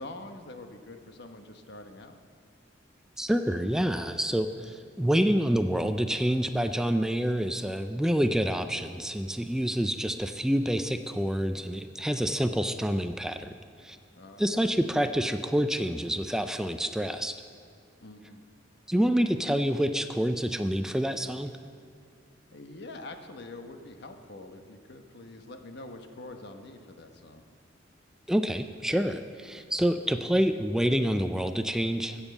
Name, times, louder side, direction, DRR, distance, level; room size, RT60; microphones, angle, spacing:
voice 1, 0.0-2.2 14.1-14.7 18.0-18.4 22.5-27.4, left 2 dB, 65° left, 6 dB, 1.1 m, -45 dB
voice 2, 3.2-13.5 13.8-14.0 14.4-17.4 18.9-21.5 28.3-32.2, equal, 5° right, 8 dB, 0.4 m, -27 dB
14.0 x 7.2 x 8.2 m, 2.3 s
head